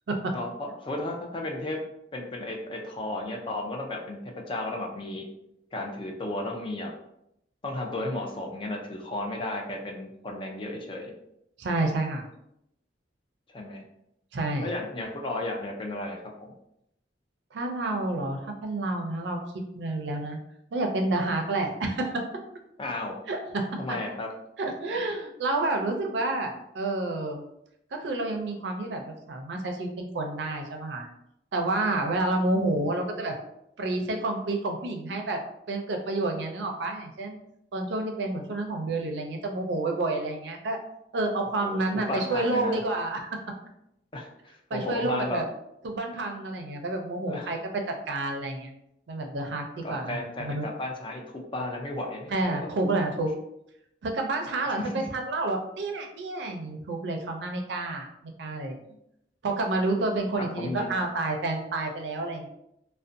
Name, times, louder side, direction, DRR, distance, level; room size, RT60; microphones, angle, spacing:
voice 1, 0.3-1.8 2.1-5.3 5.7-6.9 7.6-11.1 13.5-13.8 14.6-16.5 22.8-23.1 23.8-24.3 41.6-41.8 42.1-42.8 44.1-45.4 47.3-47.6 49.8-52.7 54.8-54.9 60.6-60.9, left 2 dB, 30° left, 1 dB, 0.4 m, -34 dB
voice 2, 11.6-12.2 14.3-14.7 17.5-19.4 19.8-20.4 20.7-22.2 23.3-23.7 24.6-27.4 27.9-31.1 31.5-33.3 33.8-35.4 35.7-37.4 37.7-40.8 41.1-43.2 44.7-45.4 45.8-47.6 48.1-48.7 49.1-50.7 52.3-53.3 54.0-58.1 58.4-58.8 59.4-62.5, right 2 dB, 75° right, 3 dB, 0.4 m, -29 dB
2.5 x 2.1 x 2.5 m, 0.79 s
head